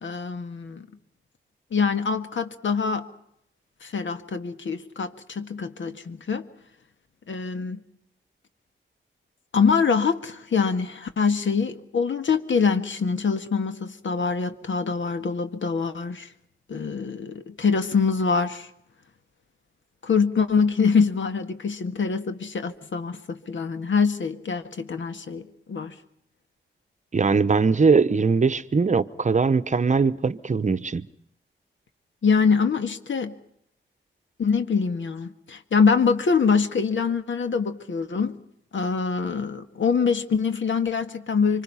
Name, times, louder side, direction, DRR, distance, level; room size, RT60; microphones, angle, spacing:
voice 1, 0.0-0.9 1.7-3.1 3.8-6.5 7.3-7.8 9.5-16.3 16.7-18.7 20.0-26.0 32.2-33.3 34.4-38.4 38.7-41.6, left 5 dB, 70° left, 1.8 m, -24 dB
voice 2, 27.1-31.1, right 4 dB, 35° right, 0.9 m, -21 dB
26.0 x 25.0 x 5.7 m
wide cardioid pair, 100°, 21 cm